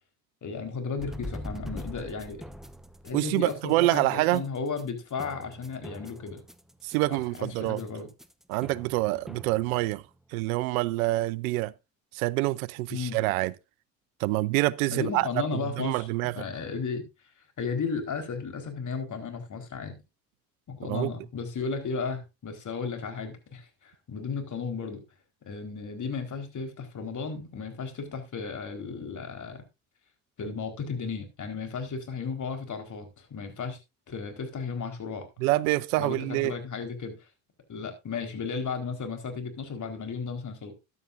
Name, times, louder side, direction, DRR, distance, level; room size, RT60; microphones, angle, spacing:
voice 1, 0.4-2.4 3.0-6.4 7.1-8.1 12.9-13.2 14.9-16.1 16.3-17.1 17.6-20.0 20.7-25.0 25.5-29.6 30.4-33.8 34.1-35.3 36.0-37.3 37.7-40.7, left 5 dB, 45° left, 4.3 m, -34 dB
sound 1, 1.0-10.2, equal, ahead, 1.1 m, -43 dB
voice 2, 3.1-4.4 6.8-7.8 8.5-10.0 10.3-11.7 12.1-13.5 14.2-15.3 15.5-16.3 20.9-21.1 35.4-36.5, right 19 dB, 80° right, 0.7 m, -26 dB
14.0 x 11.0 x 2.6 m
hypercardioid pair, 65°, 41 cm